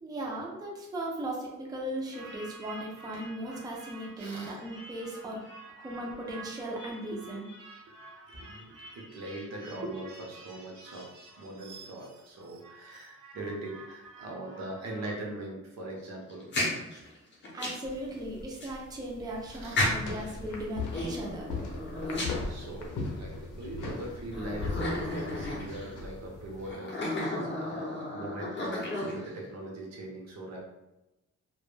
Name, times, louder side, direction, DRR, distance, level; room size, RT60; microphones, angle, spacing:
voice 1, 0.0-5.5 5.8-7.5 17.5-21.6, right 1 dB, 15° right, -1 dB, 0.3 m, -37 dB
sound 1, 2.1-15.1, right 2 dB, 85° right, 0.9 m, -50 dB
voice 2, 4.2-4.6 7.1-7.2 8.3-11.1 11.4-16.5 19.5-19.9 22.3-30.6, right 2 dB, 60° right, -2 dB, 0.6 m, -41 dB
sound 2, 16.3-17.9 18.6-18.7 19.7-20.3 20.9-23.0 23.6-23.7 24.3-25.9 26.6-29.4, left 1 dB, 35° left, 0.6 m, -33 dB
sound 3, 17.8-26.7, left 3 dB, 80° left, 0.6 m, -39 dB
2.1 x 2.1 x 3.1 m, 0.98 s
wide cardioid pair, 170°, 30 cm